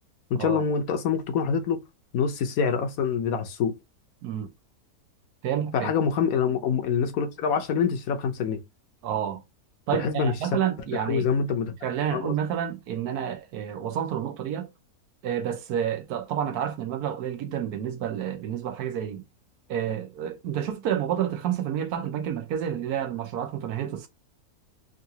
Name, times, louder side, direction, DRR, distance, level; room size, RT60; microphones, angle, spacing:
voice 1, 0.3-1.8 2.1-3.7 5.7-8.6 9.9-10.3 11.0-11.7 12.1-12.4, left 6 dB, 70° left, 1.1 m, -25 dB
voice 2, 5.4-5.9 9.0-9.4 9.9-11.3 11.8-14.7 15.2-19.2 19.7-24.1, right 9 dB, 80° right, 1.2 m, -29 dB
3.7 x 2.4 x 2.8 m
omnidirectional pair, 1.7 m